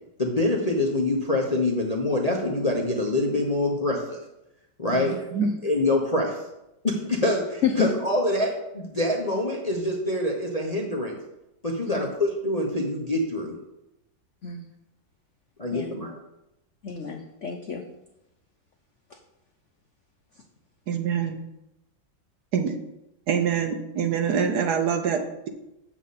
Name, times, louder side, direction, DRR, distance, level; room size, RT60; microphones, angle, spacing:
voice 1, 0.2-4.2 4.8-5.1 5.6-6.4 6.8-11.2 11.6-13.6 15.6-16.1, left 1 dB, 30° left, 0 dB, 0.7 m, -25 dB
voice 2, 16.8-17.8, left 7 dB, 65° left, 4 dB, 0.7 m, -29 dB
voice 3, 20.9-21.4 22.5-22.8 23.3-25.5, right 7 dB, 65° right, 6 dB, 1.2 m, -25 dB
8.0 x 7.5 x 4.2 m, 0.90 s
omnidirectional pair, 2.1 m